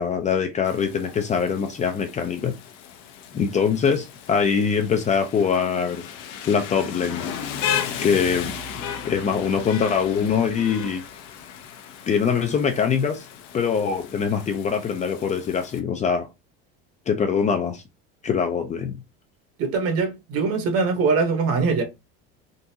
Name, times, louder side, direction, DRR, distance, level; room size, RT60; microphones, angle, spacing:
voice 1, 0.0-2.5 3.3-6.0 6.5-7.3 8.0-8.5 9.0-11.0 12.1-13.2 13.5-16.3 17.1-17.8 18.2-19.0, left 6 dB, 25° left, 0.4 m, -23 dB
Rain, 0.6-15.8, left 8 dB, 70° left, 0.7 m, -35 dB
voice 2, 19.6-21.8, right 4 dB, 50° right, 1.1 m, -22 dB
3.8 x 2.5 x 2.7 m
supercardioid pair, 130°, 30 cm